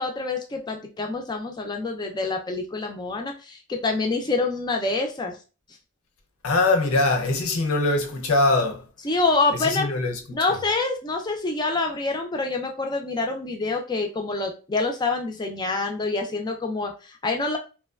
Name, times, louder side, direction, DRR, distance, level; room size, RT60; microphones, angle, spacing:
voice 1, 0.0-5.4 9.0-9.9 10.3-17.6, left 3 dB, 20° left, 0.4 m, -26 dB
voice 2, 6.4-8.9 9.5-10.4, left 2 dB, 85° left, 0.5 m, -22 dB
3.0 x 2.1 x 2.3 m
head